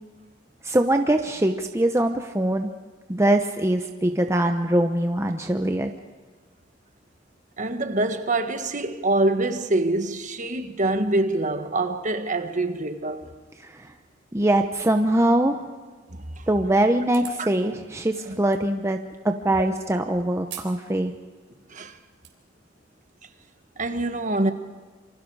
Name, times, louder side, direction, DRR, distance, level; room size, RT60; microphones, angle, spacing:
voice 1, 0.6-2.7 3.1-5.9 13.6-13.9 14.3-15.6 16.5-19.0 19.2-21.1, right 1 dB, 15° right, 0.8 m, -22 dB
voice 2, 7.6-13.3 16.4-16.5 17.4-17.5 18.2-18.3 21.7-21.9 23.8-24.5, right 2 dB, 40° right, 1.4 m, -25 dB
sound 1, 17.1-17.5 18.5-18.6 20.5-20.8 21.2-21.3 21.9-22.3, right 11 dB, 90° right, 3.8 m, -40 dB
27.5 x 25.5 x 4.8 m
head